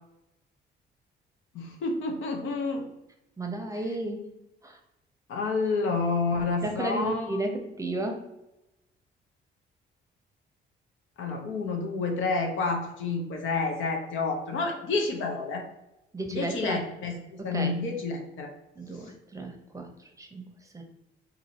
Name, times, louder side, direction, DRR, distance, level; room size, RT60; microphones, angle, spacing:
voice 1, 1.5-2.8 5.3-7.4 11.2-15.6 16.3-18.5, left 3 dB, 80° left, 3 dB, 0.7 m, -29 dB
voice 2, 3.4-4.8 6.6-8.2 16.1-16.8 17.4-17.8 18.8-20.5 20.7-20.8, right 2 dB, 15° right, 3 dB, 0.7 m, -33 dB
2.6 x 2.6 x 4.1 m, 0.92 s
cardioid pair, 90°, 20 cm